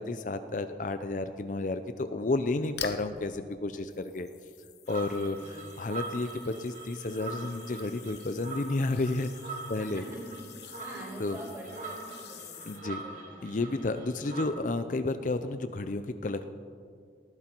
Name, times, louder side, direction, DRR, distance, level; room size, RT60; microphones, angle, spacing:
voice 1, 0.0-4.3 4.9-9.3 9.7-10.0 11.2-11.4 12.7-13.0 13.4-16.4, left 2 dB, 45° left, 10 dB, 0.6 m, -31 dB
sound 1, 2.7-3.2 3.8-12.8, left 9 dB, 75° left, 1.0 m, -47 dB
sound 2, 4.9-14.5, right 3 dB, 45° right, 2.0 m, -43 dB
voice 2, 5.2-5.6 9.8-10.2 10.8-12.7 13.0-14.0, right 1 dB, 20° right, -4 dB, 5.1 m, -46 dB
19.5 x 14.5 x 4.5 m, 2.2 s
head